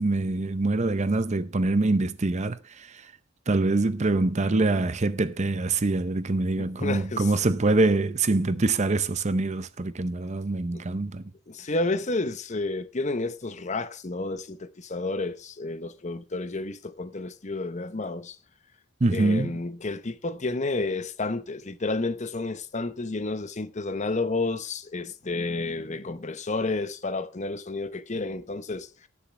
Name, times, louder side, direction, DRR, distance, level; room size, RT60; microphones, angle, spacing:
voice 1, 0.0-2.9 3.5-11.2 19.0-19.5, right 2 dB, 35° right, 0.6 m, -24 dB
voice 2, 6.6-7.3 10.7-10.8 11.5-18.4 19.1-28.9, left 3 dB, 35° left, 0.8 m, -31 dB
19.0 x 7.1 x 3.3 m
head